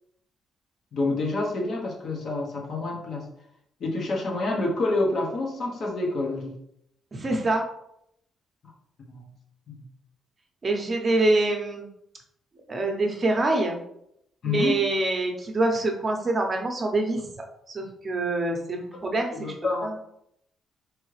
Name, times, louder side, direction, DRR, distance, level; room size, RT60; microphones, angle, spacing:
voice 1, 0.9-3.3 3.8-6.5 9.1-9.3 9.7-9.8 14.4-14.8 19.3-20.0, left 2 dB, 55° left, -1 dB, 1.2 m, -28 dB
voice 2, 7.1-7.6 10.6-11.9 12.7-13.8 14.4-19.5 19.8-20.0, right 2 dB, 35° right, 2 dB, 0.8 m, -25 dB
3.7 x 3.2 x 3.2 m, 0.75 s
cardioid pair, 90°, 0 cm